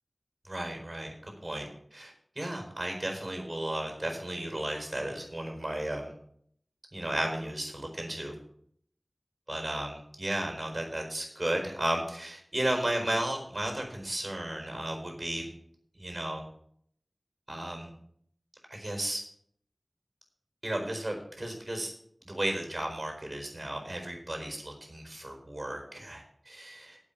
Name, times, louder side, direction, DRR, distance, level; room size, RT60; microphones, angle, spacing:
voice 1, 0.4-6.1 6.9-8.4 9.5-15.5 16.0-16.4 17.5-17.9 18.7-19.2 20.6-21.9 22.2-27.0, right 1 dB, 45° right, 2 dB, 4.5 m, -34 dB
9.0 x 7.7 x 8.8 m, 0.65 s
wide cardioid pair, 50°, 0 cm